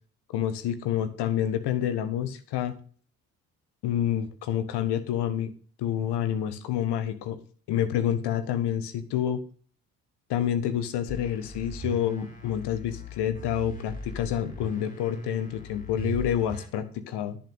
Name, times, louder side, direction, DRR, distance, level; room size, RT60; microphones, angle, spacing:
voice 1, 0.3-2.7 3.8-5.5 5.8-7.4 7.7-9.4 10.3-17.4, left 10 dB, 60° left, 11 dB, 1.5 m, -28 dB
sound 1, 11.1-16.7, right 1 dB, 15° left, 4.4 m, -39 dB
10.5 x 6.0 x 6.5 m, 0.43 s
figure-of-eight pair, 45°, 46 cm